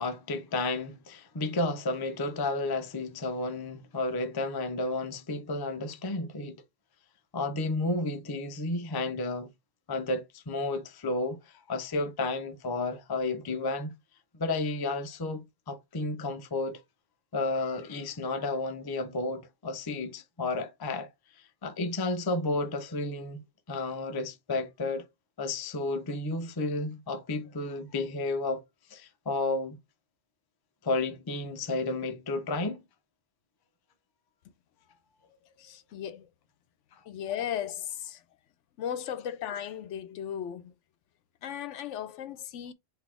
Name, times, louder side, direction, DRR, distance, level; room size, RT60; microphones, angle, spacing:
voice 1, 0.0-6.6 7.3-9.5 9.9-14.0 14.3-16.8 17.3-21.1 21.6-23.4 23.7-25.0 25.4-28.6 28.9-29.8 30.8-32.8, left 2 dB, 30° left, 0.4 m, -32 dB
voice 2, 35.6-36.3 37.1-38.2 38.8-40.7 41.4-42.7, left 9 dB, 75° left, 0.9 m, -36 dB
4.0 x 2.9 x 4.4 m
omnidirectional pair, 1.3 m